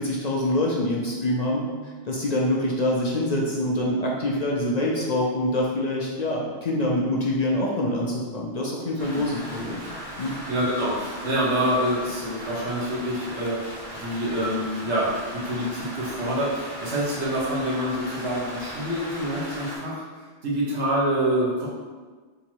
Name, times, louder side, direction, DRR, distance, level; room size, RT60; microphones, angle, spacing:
voice 1, 0.0-1.6 2.1-10.4, left 1 dB, 50° left, -3 dB, 0.6 m, -25 dB
Rain, 9.0-19.8, equal, 45° right, 1.3 m, -38 dB
voice 2, 10.2-20.0 20.4-21.7, equal, 90° right, -6 dB, 1.5 m, -26 dB
3.7 x 2.9 x 4.5 m, 1.4 s
omnidirectional pair, 1.1 m